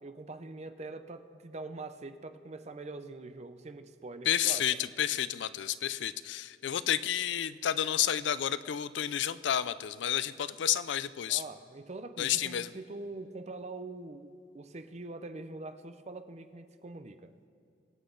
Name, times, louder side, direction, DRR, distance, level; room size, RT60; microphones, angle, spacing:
voice 1, 0.0-4.7 11.3-17.3, right 2 dB, 40° right, 10 dB, 0.6 m, -44 dB
voice 2, 4.3-11.4 12.2-12.7, left 10 dB, 75° left, 16 dB, 0.4 m, -30 dB
22.5 x 8.2 x 3.9 m, 2.4 s
head